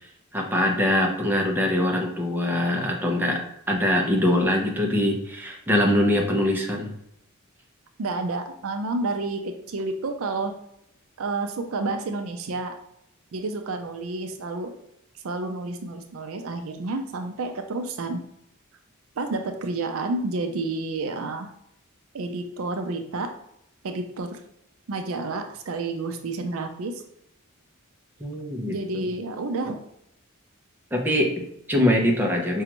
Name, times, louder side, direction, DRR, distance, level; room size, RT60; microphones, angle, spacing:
voice 1, 0.3-3.4 3.7-6.9 28.2-29.1 30.9-32.6, left 1 dB, 10° right, 0 dB, 0.6 m, -23 dB
voice 2, 8.0-10.5 11.2-12.7 13.3-14.7 15.2-18.2 19.2-21.5 22.1-23.3 23.8-24.4 24.9-27.0 28.7-29.8, right 3 dB, 70° right, 5 dB, 0.5 m, -30 dB
5.0 x 2.3 x 2.9 m, 0.77 s
head